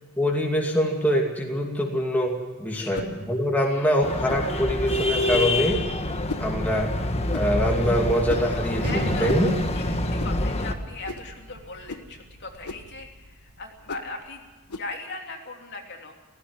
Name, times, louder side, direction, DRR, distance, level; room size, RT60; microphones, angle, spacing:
voice 1, 0.2-5.8 6.4-6.9 7.3-9.5, equal, 5° left, -1 dB, 2.6 m, -24 dB
voice 2, 2.7-3.0 3.6-3.9 8.8-9.4 9.7-9.8 10.1-14.4 14.8-16.1, left 3 dB, 50° left, 2 dB, 3.1 m, -38 dB
sound 1, 2.9-3.1 4.3-4.5 5.3-5.5 6.3-6.5 7.3-7.5 8.3-8.5 9.3-9.5 10.2-10.4 11.1-11.3 11.9-12.1 12.6-12.9 13.9-14.1 14.7-14.9, left 3 dB, 85° left, 1.3 m, -36 dB
sound 2, 4.0-10.7, left 1 dB, 30° left, 1.4 m, -27 dB
Gunshot gunfire, 7.8-14.3, right 1 dB, 80° right, 1.5 m, -39 dB
17.0 x 16.5 x 9.4 m, 1.3 s
head